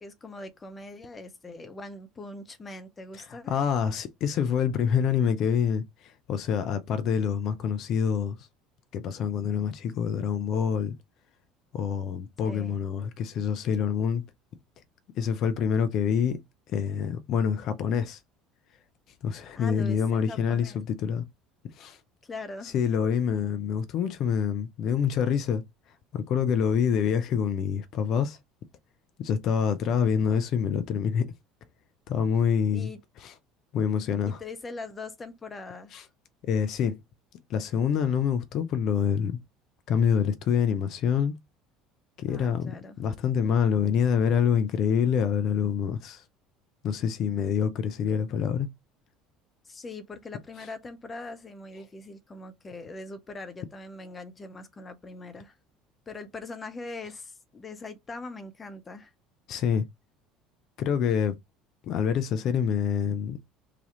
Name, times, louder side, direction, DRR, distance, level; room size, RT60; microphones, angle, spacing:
voice 1, 0.0-3.5 12.4-12.8 19.6-20.8 22.2-22.7 32.7-33.0 34.4-36.0 42.3-43.0 49.7-55.5 56.1-59.1, left 3 dB, 25° left, 0.8 m, -41 dB
voice 2, 3.5-8.4 8.9-11.0 11.7-14.2 15.2-16.4 16.7-18.2 19.2-21.2 21.8-22.0 22.7-25.6 26.1-28.4 29.2-31.3 32.1-32.9 33.2-33.3 33.7-34.4 35.9-36.0 36.5-37.0 37.5-39.4 39.9-41.3 42.2-46.2 46.8-48.7 59.5-59.8 60.8-61.4 61.8-63.4, left 7 dB, 50° left, 0.5 m, -26 dB
3.3 x 2.3 x 2.8 m
figure-of-eight pair, 65°, 0 cm